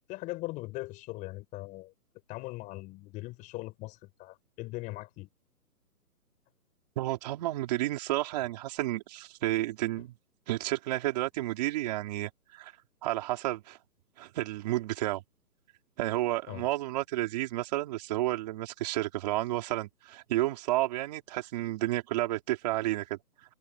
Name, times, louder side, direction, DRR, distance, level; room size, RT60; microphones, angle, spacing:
voice 1, 0.1-1.9 2.3-5.3 16.5-16.7, left 20 dB, 15° left, 7.8 m, -40 dB
voice 2, 7.0-10.1 10.5-12.7 13.0-13.8 14.2-15.2 16.0-23.2, right 16 dB, 25° right, 4.9 m, -31 dB
hypercardioid pair, 170°, 48 cm